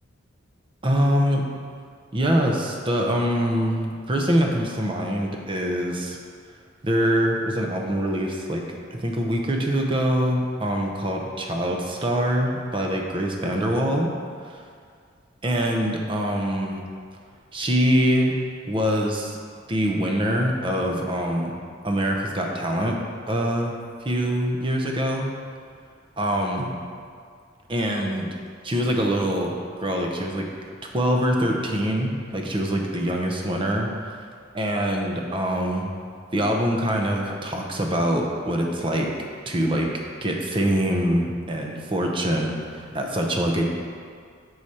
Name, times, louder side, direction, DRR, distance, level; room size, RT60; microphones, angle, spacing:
voice 1, 0.8-1.4 2.1-6.2 6.8-8.6 8.9-14.1 15.4-16.8 17.5-18.4 18.6-19.4 19.7-21.5 21.8-23.0 23.3-23.7 24.0-25.3 26.2-26.8 27.7-28.3 28.6-30.5 30.8-34.1 34.6-35.9 36.3-39.1 39.5-39.9 40.2-43.6, equal, 25° right, 1 dB, 0.6 m, -24 dB
6.4 x 4.9 x 4.2 m, 2.2 s
head